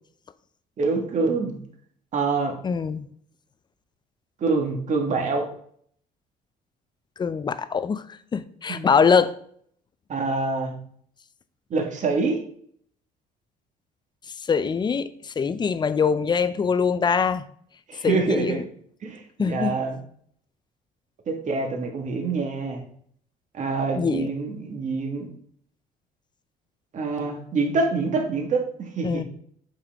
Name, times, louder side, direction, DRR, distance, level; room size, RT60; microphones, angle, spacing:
voice 1, 0.8-1.5 2.1-2.6 4.4-5.5 8.7-8.9 10.1-10.7 11.7-12.4 17.9-18.6 19.0-20.0 21.3-22.8 23.5-25.3 26.9-29.2, right 3 dB, 45° right, 3 dB, 1.7 m, -26 dB
voice 2, 2.6-3.1 7.2-8.0 8.3-9.3 14.4-17.5 18.0-18.6 19.4-19.8 24.0-24.3 29.0-29.2, left 6 dB, 25° left, 14 dB, 0.5 m, -23 dB
7.9 x 5.6 x 3.6 m, 0.62 s
cardioid pair, 110°, 17 cm